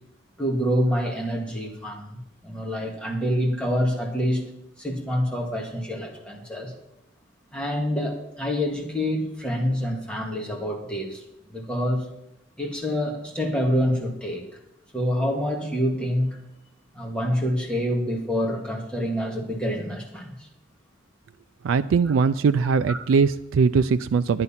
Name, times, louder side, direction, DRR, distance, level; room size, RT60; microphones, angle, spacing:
voice 1, 0.4-4.5 4.8-6.7 7.5-11.2 11.5-12.1 12.6-14.5 14.9-16.4 16.9-20.5 22.9-23.0, equal, 5° left, 0 dB, 1.9 m, -26 dB
voice 2, 21.6-24.4, right 5 dB, 85° right, 10 dB, 0.3 m, -21 dB
10.5 x 9.5 x 5.6 m, 0.82 s
head